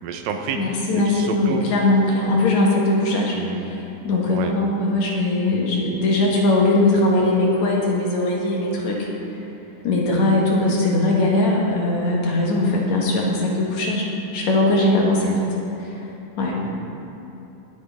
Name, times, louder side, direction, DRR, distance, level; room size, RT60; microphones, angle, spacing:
voice 1, 0.0-1.6 3.3-3.7 4.3-4.5 15.2-15.4 16.7-16.8, right 6 dB, 80° right, 5 dB, 2.3 m, -30 dB
voice 2, 0.5-3.4 3.7-3.8 4.0-9.1 9.8-15.5 15.8-16.0 16.4-16.6, left 2 dB, 60° left, -3 dB, 2.5 m, -20 dB
20.5 x 8.3 x 3.5 m, 3.0 s
omnidirectional pair, 4.1 m